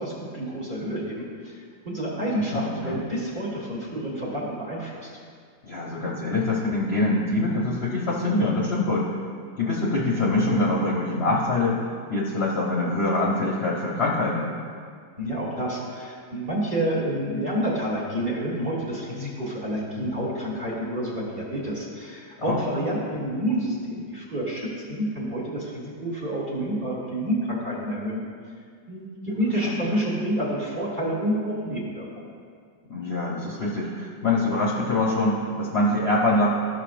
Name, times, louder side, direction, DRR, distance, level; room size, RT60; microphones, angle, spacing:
voice 1, 0.0-1.5 1.9-5.1 15.2-28.2 28.9-32.3, right 1 dB, 30° right, -6 dB, 1.6 m, -29 dB
voice 2, 2.1-3.0 5.6-9.1 9.6-11.8 12.1-14.5 22.4-22.6 29.6-30.0 32.9-36.5, left 2 dB, 45° left, -5 dB, 0.9 m, -24 dB
13.5 x 6.2 x 2.5 m, 2.1 s
omnidirectional pair, 2.0 m